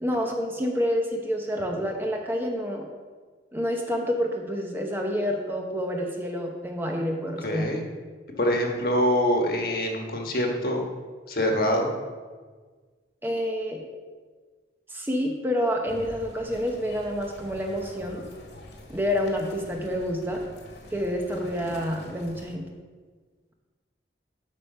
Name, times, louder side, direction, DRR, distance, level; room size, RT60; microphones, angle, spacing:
voice 1, 0.0-2.9 3.5-7.7 13.2-13.8 14.9-18.3 18.9-20.4 20.9-22.7, equal, 10° right, 1 dB, 0.8 m, -28 dB
voice 2, 7.4-7.8 8.4-10.9 11.3-11.9, equal, 55° left, 1 dB, 1.4 m, -24 dB
sound 1, 15.9-22.5, left 1 dB, 80° left, 1.8 m, -45 dB
11.5 x 5.0 x 5.6 m, 1.5 s
head